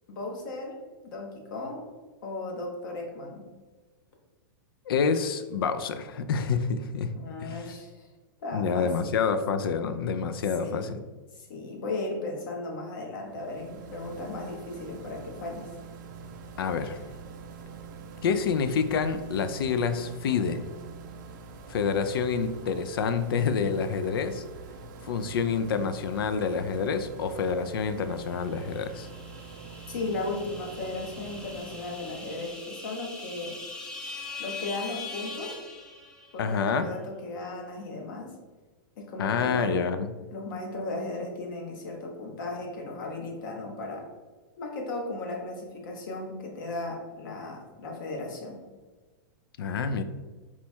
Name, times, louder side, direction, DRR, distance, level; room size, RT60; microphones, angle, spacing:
voice 1, 0.1-0.8 1.0-1.8 2.2-3.4 7.1-8.1 8.4-9.1 10.6-10.8 11.3-15.7 29.9-33.6 34.4-35.6 36.3-38.3 39.0-39.8 40.3-44.1 44.6-48.6, left 2 dB, 60° left, 1 dB, 1.1 m, -36 dB
voice 2, 4.9-7.1 7.4-7.7 8.5-11.0 16.6-17.0 18.2-20.6 21.7-24.4 25.0-29.1 36.4-36.9 39.2-40.1 49.6-50.0, left 6 dB, 85° left, 10 dB, 0.4 m, -28 dB
sound 1, 13.2-32.6, right 4 dB, 55° right, 0.5 m, -45 dB
sound 2, 28.5-36.5, left 3 dB, 5° left, 0.4 m, -42 dB
4.2 x 2.3 x 4.3 m, 1.3 s
hypercardioid pair, 145°, 12 cm